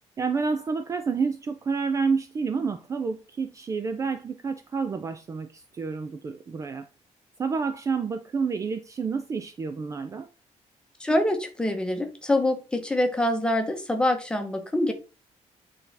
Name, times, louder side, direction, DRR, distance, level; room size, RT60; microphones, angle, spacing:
voice 1, 0.2-6.9 7.4-10.3, right 5 dB, 25° right, 0.4 m, -29 dB
voice 2, 11.0-14.9, left 1 dB, 5° left, 0.9 m, -25 dB
8.4 x 4.0 x 3.4 m
cardioid pair, 175°, 13 cm